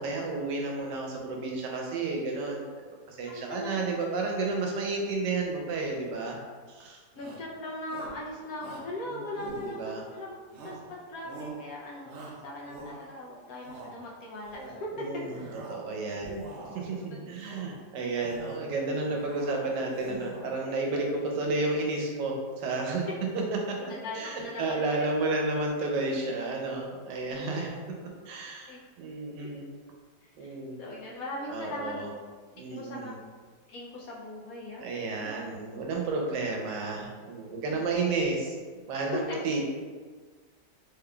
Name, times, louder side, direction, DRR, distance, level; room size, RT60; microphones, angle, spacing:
voice 1, 0.0-6.4 6.7-7.0 9.1-10.0 14.9-15.4 15.7-16.3 16.7-23.1 23.7-27.8 28.3-29.6 30.4-30.8 31.5-32.1 32.5-33.2 34.8-38.6 38.9-39.6, right 3 dB, 90° right, 0 dB, 1.3 m, -32 dB
voice 2, 3.3-3.8 7.2-10.4 10.6-14.9 17.1-17.2 23.9-25.0 27.5-27.6 28.7-28.9 30.4-30.5 30.8-31.9 32.7-33.1 33.7-34.9 37.7-37.9 39.1-39.4, left 1 dB, 70° left, -3 dB, 0.9 m, -39 dB
Shout, 7.1-7.5 7.9-8.2 8.6-8.9 9.4-10.1 10.5-10.9 11.2-11.6 12.0-13.2 13.5-14.0 14.4-14.8 15.2-15.8 16.2-16.9 17.4-17.8 18.2-18.7 19.0-19.6 19.9-20.6, right 3 dB, 70° right, 0.8 m, -44 dB
3.7 x 3.4 x 2.2 m, 1.5 s
omnidirectional pair, 1.8 m